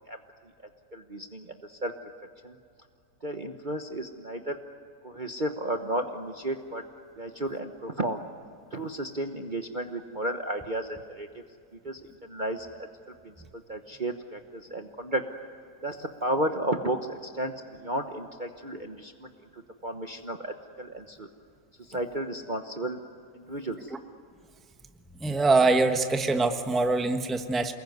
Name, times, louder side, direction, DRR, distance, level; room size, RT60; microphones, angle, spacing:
voice 1, 0.9-1.9 2.4-2.5 3.2-4.6 5.0-6.8 7.2-8.2 8.7-11.3 11.8-12.9 13.2-15.2 15.8-17.5 17.8-21.3 21.9-23.0 23.3-23.9, right 1 dB, 30° right, 4 dB, 1.1 m, -33 dB
voice 2, 25.2-27.7, right 3 dB, ahead, 6 dB, 1.0 m, -24 dB
29.0 x 21.0 x 9.4 m, 2.4 s
omnidirectional pair, 1.9 m